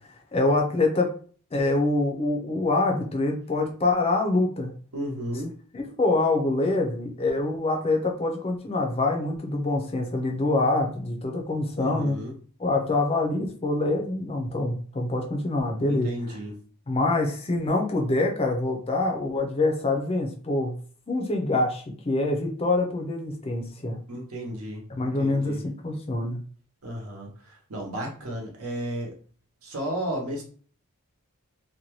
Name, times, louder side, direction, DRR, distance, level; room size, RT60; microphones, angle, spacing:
voice 1, 0.3-1.1 1.5-4.7 5.7-12.2 12.6-16.1 16.9-20.7 21.1-24.0 24.9-26.4, left 2 dB, 25° left, 2 dB, 0.4 m, -25 dB
voice 2, 4.9-5.5 11.8-12.3 15.9-16.6 24.1-25.6 26.8-29.1 29.6-30.4, equal, 75° right, 0 dB, 0.9 m, -33 dB
2.7 x 2.2 x 2.9 m, 0.42 s
head